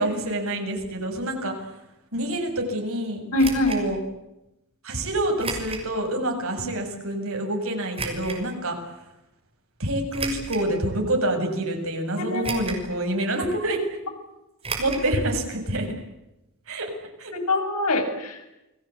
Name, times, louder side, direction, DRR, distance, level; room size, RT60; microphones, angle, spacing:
voice 1, 0.0-1.6 2.1-3.2 3.7-4.0 4.8-8.8 9.8-13.8 14.8-15.9 16.7-16.9 17.2-17.3, right 1 dB, 65° right, 3 dB, 7.7 m, -27 dB
voice 2, 3.3-3.8 6.6-6.7 12.1-12.6 17.3-18.4, left 2 dB, 85° left, 4 dB, 6.7 m, -24 dB
sound 1, 3.4-3.8 5.4-5.9 6.4-6.5 7.9-8.4 10.1-10.7 11.3-11.4 12.4-12.9 13.2-13.3 14.6-15.1 15.4-15.5 15.7-15.8, right 3 dB, 25° right, 6.2 m, -32 dB
29.5 x 21.5 x 8.5 m, 0.92 s
head